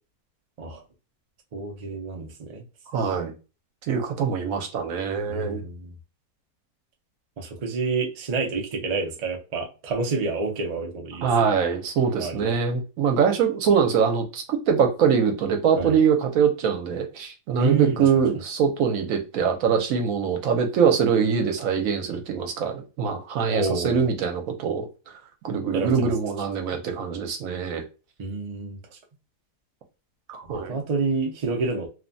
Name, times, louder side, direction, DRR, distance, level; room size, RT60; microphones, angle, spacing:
voice 1, 1.5-2.6 5.3-5.9 7.4-11.3 12.2-12.6 15.8-16.0 17.6-18.1 23.5-24.0 25.7-26.1 28.2-28.8 30.4-31.9, right 4 dB, 90° right, 0.3 m, -28 dB
voice 2, 2.9-3.3 3.9-5.6 11.2-24.9 25.4-27.8 30.3-30.8, right 6 dB, 70° right, 1.0 m, -23 dB
3.0 x 2.1 x 2.6 m
omnidirectional pair, 1.6 m